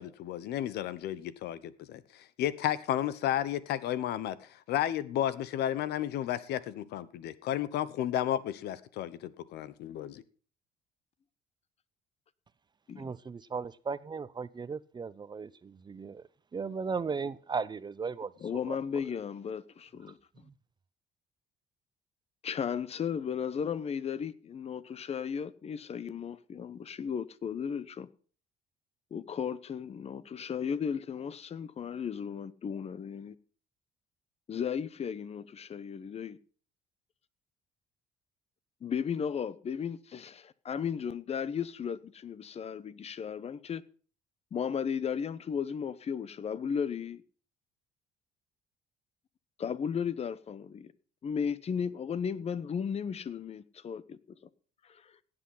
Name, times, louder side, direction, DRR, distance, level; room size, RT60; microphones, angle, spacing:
voice 1, 0.0-10.2, left 11 dB, 80° left, 1.0 m, -33 dB
voice 2, 13.0-16.2 16.5-18.3 18.7-18.8 20.4-20.5, right 5 dB, 25° right, 0.6 m, -36 dB
voice 3, 18.4-20.2 22.4-28.1 29.1-33.3 34.5-36.4 38.8-43.8 44.5-47.2 49.6-50.9 51.2-54.2 54.8-55.2, left 7 dB, 40° left, 0.9 m, -35 dB
16.5 x 8.0 x 5.6 m
cardioid pair, 110°, 17 cm